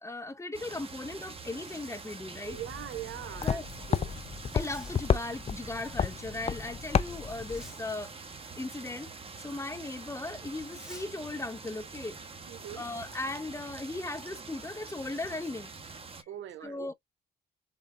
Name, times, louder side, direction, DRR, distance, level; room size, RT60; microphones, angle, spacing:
voice 1, 0.0-2.6 3.4-3.7 4.5-8.1 8.6-9.1 9.4-12.2 12.7-15.7 16.6-16.9, left 2 dB, 15° left, 0.9 m, -37 dB
sound 1, 0.5-16.2, right 4 dB, 30° right, 1.3 m, -46 dB
Zipper (clothing), 1.3-2.4 4.4-5.0 7.3-7.9 10.6-11.1, equal, 5° right, 1.4 m, -53 dB
sound 2, 2.5-7.7, left 7 dB, 30° left, 0.5 m, -32 dB
voice 2, 2.5-3.6 3.9-4.1 12.5-12.8 16.3-16.9, right 12 dB, 80° right, 0.9 m, -41 dB
4.2 x 3.4 x 3.8 m
cardioid pair, 90°, 20 cm